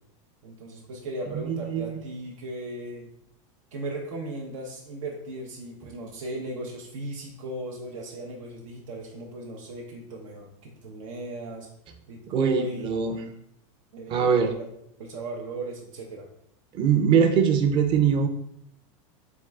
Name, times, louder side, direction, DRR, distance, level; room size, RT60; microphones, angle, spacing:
voice 1, 0.4-3.1 3.7-11.7 12.1-12.9 13.9-14.7 15.0-16.3, right 1 dB, 90° right, 0 dB, 0.8 m, -37 dB
voice 2, 1.3-2.0 12.3-13.2 14.1-14.5 16.7-18.3, right 7 dB, 30° right, 6 dB, 0.5 m, -22 dB
3.7 x 3.6 x 3.2 m, 0.73 s
supercardioid pair, 150°, 17 cm